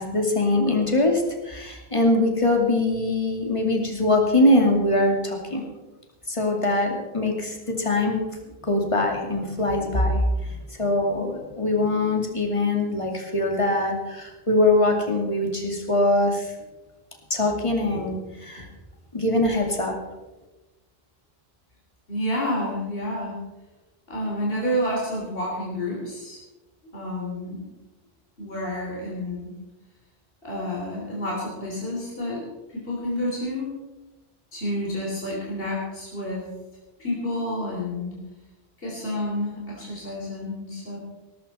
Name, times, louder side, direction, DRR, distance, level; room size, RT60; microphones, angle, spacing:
voice 1, 0.0-5.6 6.3-8.2 8.6-16.5 17.3-18.2 18.5-18.7 19.1-19.9, left 2 dB, 30° left, 2 dB, 2.5 m, -22 dB
voice 2, 22.1-23.4 24.1-26.4 26.9-27.6 28.4-29.5 30.4-33.7 34.5-36.5 37.0-38.1 38.8-41.0, left 1 dB, 65° left, -3 dB, 3.7 m, -29 dB
17.5 x 14.0 x 4.3 m, 1.1 s
omnidirectional pair, 1.0 m